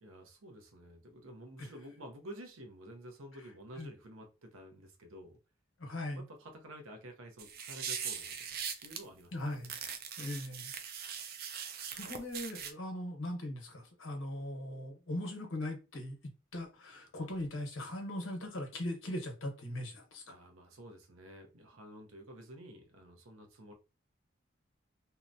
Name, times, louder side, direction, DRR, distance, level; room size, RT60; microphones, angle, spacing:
voice 1, 0.0-5.4 6.1-8.4 8.8-9.6 20.3-23.7, right 1 dB, 85° right, 0.7 m, -51 dB
voice 2, 5.8-6.2 9.3-9.7 10.2-10.7 11.9-20.3, left 1 dB, 75° left, 1.0 m, -40 dB
sound 1, 7.4-9.0 9.6-12.7, right 7 dB, 45° right, 0.4 m, -41 dB
2.8 x 2.1 x 2.5 m
head